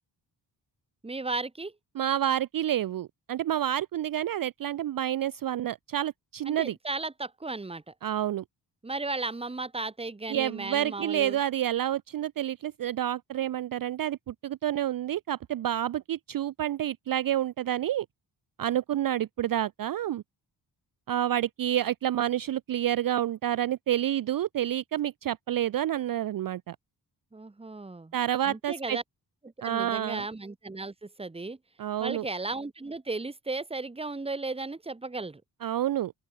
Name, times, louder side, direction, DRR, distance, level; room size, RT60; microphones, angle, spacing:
voice 1, 1.0-1.7 6.5-7.9 8.8-11.4 27.3-28.1 28.5-29.0 29.6-31.6 32.0-35.4, right 3 dB, 15° right, 1.0 m, -35 dB
voice 2, 2.0-6.8 8.0-8.4 10.3-18.1 18.6-20.2 21.1-26.8 28.1-29.0 29.6-30.2 31.8-32.3 35.6-36.1, right 11 dB, 50° right, 0.5 m, -29 dB
open air
cardioid pair, 80°, 43 cm